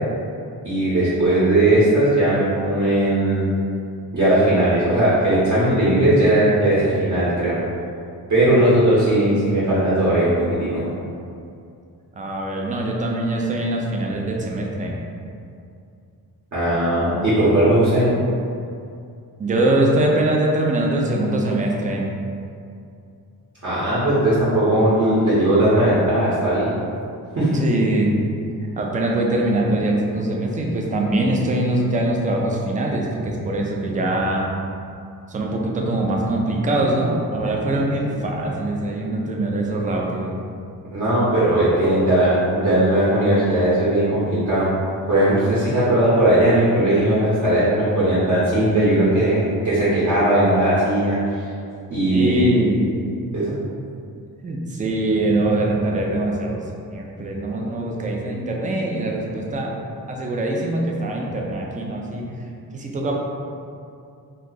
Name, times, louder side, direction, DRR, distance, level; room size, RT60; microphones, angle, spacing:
voice 1, 0.6-3.5 4.1-7.6 8.3-10.8 16.5-18.1 23.6-26.8 27.4-27.5 40.9-44.7 45.1-51.2 51.9-52.5 53.3-53.5, right 1 dB, 45° right, -10 dB, 0.9 m, -18 dB
voice 2, 12.1-15.0 19.4-22.1 27.6-28.1 28.6-34.5 35.3-40.3 52.1-52.9 54.4-56.6 56.9-59.8 60.1-62.3 62.7-63.2, right 1 dB, 20° right, -1 dB, 0.3 m, -22 dB
2.7 x 2.3 x 3.8 m, 2.4 s
wide cardioid pair, 135°, 38 cm